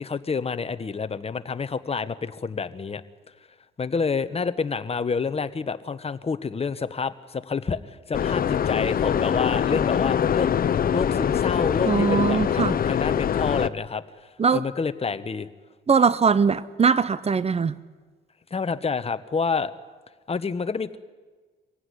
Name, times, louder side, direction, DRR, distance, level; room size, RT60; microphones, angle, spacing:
voice 1, 0.0-3.0 3.8-10.5 10.9-15.5 18.5-19.7 20.3-21.0, left 5 dB, 30° left, 11 dB, 1.2 m, -28 dB
sound 1, 8.1-13.7, left 8 dB, 45° left, 0.7 m, -23 dB
voice 2, 11.9-12.8 14.4-14.6 15.9-17.7, right 5 dB, 30° right, 17 dB, 0.8 m, -21 dB
24.0 x 16.0 x 9.9 m, 1.4 s
cardioid pair, 90°, 20 cm